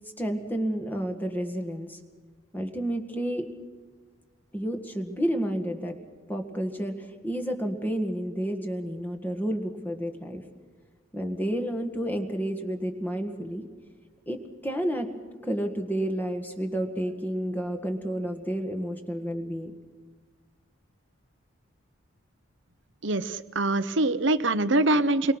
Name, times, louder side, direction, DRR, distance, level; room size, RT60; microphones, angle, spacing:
voice 1, 0.2-2.0 2.5-3.5 4.5-6.0 6.3-10.4 11.1-13.7 14.3-14.4 14.6-15.1 15.4-19.7, equal, 10° left, 3 dB, 1.8 m, -30 dB
voice 2, 23.0-25.3, right 2 dB, 60° right, 12 dB, 1.1 m, -24 dB
29.0 x 23.5 x 6.3 m, 1.5 s
head